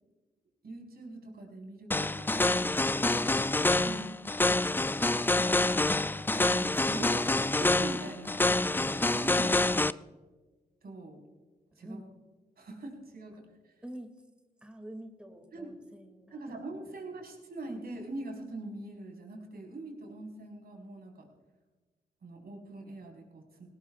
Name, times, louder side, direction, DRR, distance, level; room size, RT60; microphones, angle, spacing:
voice 1, 0.6-2.3 3.8-4.2 6.1-7.3 7.6-9.6 10.8-11.2 11.8-12.0 12.6-13.4 15.5-15.7 16.3-21.3 22.2-23.7, right 2 dB, 60° right, 1 dB, 4.7 m, -43 dB
sound 1, 1.9-9.9, left 2 dB, 10° left, 0.4 m, -27 dB
voice 2, 11.7-12.2 13.8-14.1 14.6-17.0, right 1 dB, 5° right, 5 dB, 2.4 m, -47 dB
19.0 x 18.5 x 2.5 m, 1.3 s
cardioid pair, 60°, 18 cm